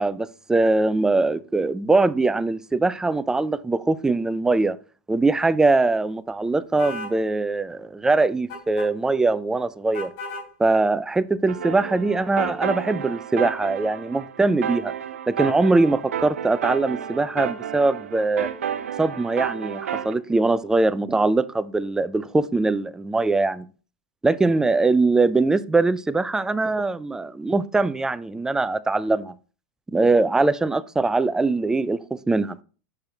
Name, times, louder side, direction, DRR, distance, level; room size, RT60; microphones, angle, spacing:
voice 1, 0.0-4.8 5.1-10.1 10.6-14.9 15.3-18.5 19.0-23.7 24.2-29.4 29.9-32.6, right 3 dB, 10° right, 0.3 m, -22 dB
sound 1, 6.8-7.2 8.5-8.9 9.9-10.5, left 2 dB, 55° left, 3.5 m, -34 dB
sound 2, 11.5-20.1, right 8 dB, 85° right, 0.6 m, -31 dB
6.6 x 5.9 x 2.8 m
hypercardioid pair, 105°, 7 cm